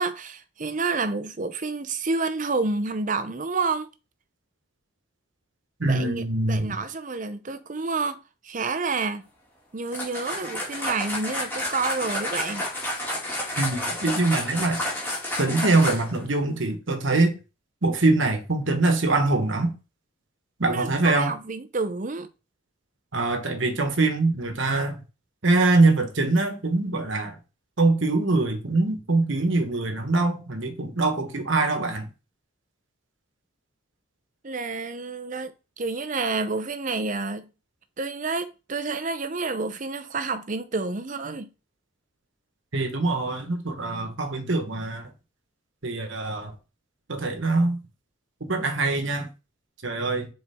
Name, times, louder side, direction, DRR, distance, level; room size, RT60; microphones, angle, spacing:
voice 1, 0.0-3.9 5.8-9.2 9.7-12.7 20.7-22.3 34.4-37.5 38.0-41.5, right 3 dB, 35° right, 0.6 m, -29 dB
voice 2, 5.8-6.8 13.6-14.8 15.4-17.3 17.8-19.7 20.6-21.3 23.1-25.0 25.4-27.4 27.8-32.1 42.7-45.1 45.8-46.5 47.1-47.8 48.4-49.3 49.8-50.3, right 2 dB, 60° right, 1.2 m, -23 dB
sound 1, 9.9-16.2, left 1 dB, 10° left, 2.5 m, -30 dB
6.8 x 4.3 x 3.6 m
head